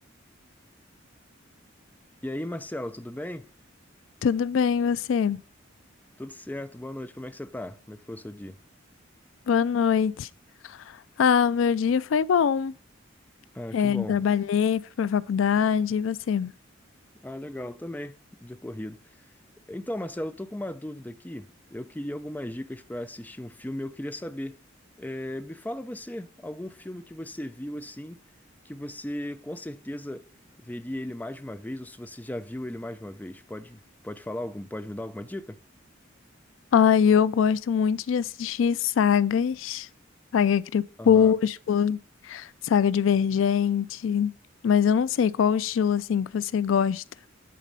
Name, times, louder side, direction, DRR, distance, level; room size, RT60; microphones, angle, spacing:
voice 1, 2.2-3.5 6.2-8.6 13.5-14.2 17.2-18.2 18.4-19.0 19.7-24.6 25.0-28.2 28.7-30.2 30.6-35.6 41.0-41.3, left 1 dB, 10° left, 0.5 m, -36 dB
voice 2, 4.2-5.4 9.5-10.3 10.6-12.7 13.7-16.5 36.7-39.9 40.3-42.0 42.2-44.3 44.6-47.0, left 7 dB, 70° left, 0.3 m, -23 dB
10.0 x 4.1 x 5.3 m
head